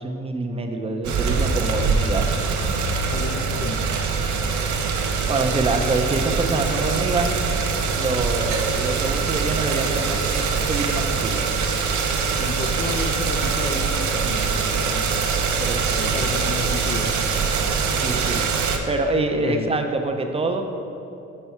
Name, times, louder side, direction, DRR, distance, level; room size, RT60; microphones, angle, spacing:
voice 1, 0.0-2.4 5.3-7.3 8.0-11.5 15.3-16.1 18.0-18.4 18.9-20.6, right 3 dB, 20° right, 4 dB, 0.5 m, -26 dB
sound 1, 1.0-18.8, right 5 dB, 70° right, 0.7 m, -23 dB
voice 2, 3.1-3.9 12.4-15.2 16.1-17.1 19.4-19.7, left 4 dB, 30° left, 4 dB, 0.4 m, -31 dB
4.5 x 4.3 x 5.8 m, 2.7 s
cardioid pair, 90°, 30 cm